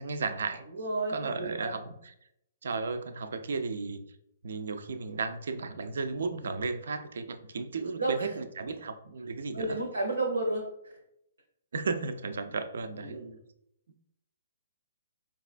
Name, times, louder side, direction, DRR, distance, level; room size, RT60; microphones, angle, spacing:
voice 1, 0.0-0.6 1.1-2.1 2.6-4.0 4.4-9.8 11.7-13.2, right 4 dB, 70° right, 10 dB, 0.4 m, -34 dB
voice 2, 0.7-1.7 8.0-8.3 9.5-10.9 13.0-13.4, right 2 dB, 85° right, 0 dB, 0.7 m, -32 dB
4.7 x 2.3 x 2.4 m, 0.78 s
hypercardioid pair, 130°, 0 cm